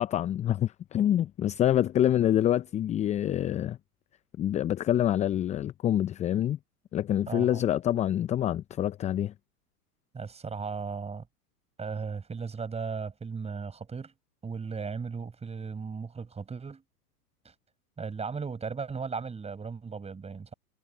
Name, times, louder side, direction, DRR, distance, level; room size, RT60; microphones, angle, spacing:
voice 1, 0.0-3.8 4.4-6.6 6.9-9.3, left 11 dB, 15° left, 0.7 m, -26 dB
voice 2, 7.3-7.6 10.1-11.3 11.8-14.1 14.4-16.8 17.4-17.5 18.0-20.5, right 5 dB, 15° right, 7.8 m, -36 dB
figure-of-eight pair, 105°, 48 cm